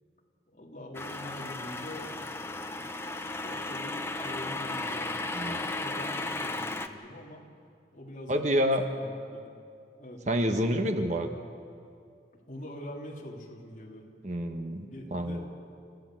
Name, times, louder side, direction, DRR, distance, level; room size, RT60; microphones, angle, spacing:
voice 1, 0.5-2.9 3.4-7.4 7.9-8.6 8.9-9.5 10.0-10.2 12.5-14.1 14.9-15.5, left 1 dB, 45° left, -1 dB, 3.1 m, -44 dB
sound 1, 0.9-6.9, left 2 dB, 15° left, 0.8 m, -35 dB
voice 2, 8.3-8.8 10.3-11.3 14.2-15.5, equal, 40° right, 6 dB, 1.2 m, -28 dB
29.5 x 14.5 x 7.6 m, 2.4 s
head